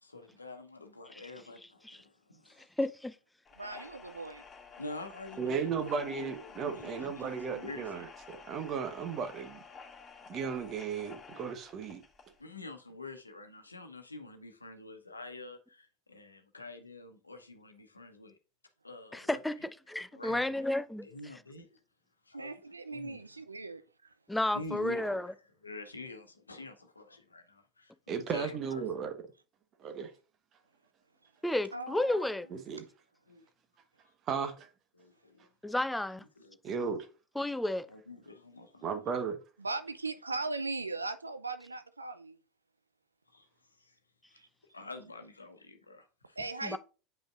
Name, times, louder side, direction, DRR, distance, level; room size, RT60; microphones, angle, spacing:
voice 1, 0.0-2.7 4.8-8.1 12.4-18.4 18.8-19.4 20.1-20.7 21.0-21.8 22.3-22.6 22.9-23.2 24.5-25.2 25.6-28.8 33.3-33.4 35.0-35.5 36.4-36.8 37.9-38.9 43.3-43.5 43.8-44.0 44.3-44.4 44.7-46.4, left 3 dB, 90° left, 0.9 m, -47 dB
voice 2, 2.8-3.1 19.1-19.6 19.9-21.1 24.3-25.3 31.4-32.5 35.6-36.2 37.4-37.9 46.6-46.8, left 1 dB, 5° left, 0.5 m, -32 dB
sound 1, 3.5-12.4, left 5 dB, 25° left, 2.3 m, -51 dB
voice 3, 3.6-4.4 22.3-23.8 31.7-32.3 39.6-42.4 44.4-44.5 46.4-46.8, right 3 dB, 90° right, 0.5 m, -38 dB
voice 4, 5.4-9.6 10.3-12.0 28.1-29.1 29.8-30.1 32.5-32.9 34.3-34.7 36.6-37.1 38.8-39.4, right 6 dB, 40° right, 1.1 m, -35 dB
7.5 x 5.2 x 2.5 m
figure-of-eight pair, 75°, 0 cm